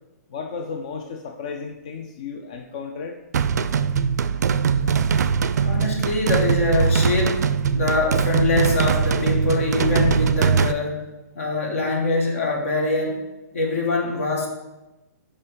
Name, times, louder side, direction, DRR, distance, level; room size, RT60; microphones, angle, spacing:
voice 1, 0.3-3.2, left 5 dB, 25° left, 3 dB, 0.3 m, -33 dB
sound 1, 3.3-10.7, right 6 dB, 75° right, 0.4 m, -21 dB
voice 2, 5.6-7.4 7.7-11.0 11.3-13.2 13.5-14.5, left 3 dB, 50° left, 1 dB, 1.6 m, -23 dB
6.6 x 5.3 x 3.6 m, 1.0 s
hypercardioid pair, 180°, 9 cm